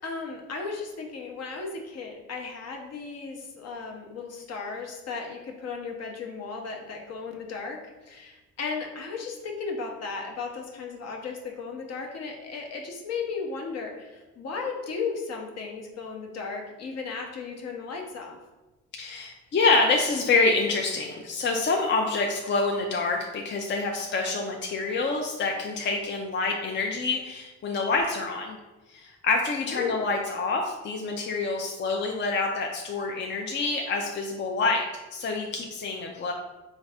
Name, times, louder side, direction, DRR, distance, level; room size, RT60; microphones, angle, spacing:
voice 1, 0.0-18.4 29.7-30.1, left 4 dB, 60° left, 1 dB, 0.8 m, -35 dB
voice 2, 18.9-28.6 28.9-34.8 35.1-36.3, left 3 dB, 40° left, 1 dB, 0.4 m, -27 dB
4.0 x 2.4 x 3.4 m, 1.1 s
cardioid pair, 90°, 30 cm